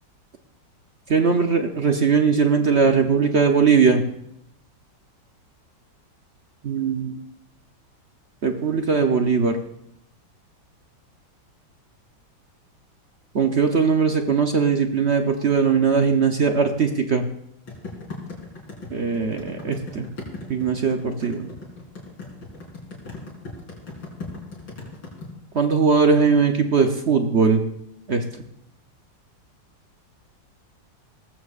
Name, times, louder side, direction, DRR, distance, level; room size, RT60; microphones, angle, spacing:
voice 1, 1.1-4.0 6.6-7.2 8.4-9.6 13.3-17.3 18.9-20.1 20.5-21.5 25.5-27.6 28.1-28.2, right 5 dB, 55° right, 5 dB, 0.8 m, -20 dB
sound 1, 17.7-25.3, left 3 dB, 75° left, 4.6 m, -37 dB
18.5 x 14.5 x 2.5 m, 0.78 s
omnidirectional pair, 2.1 m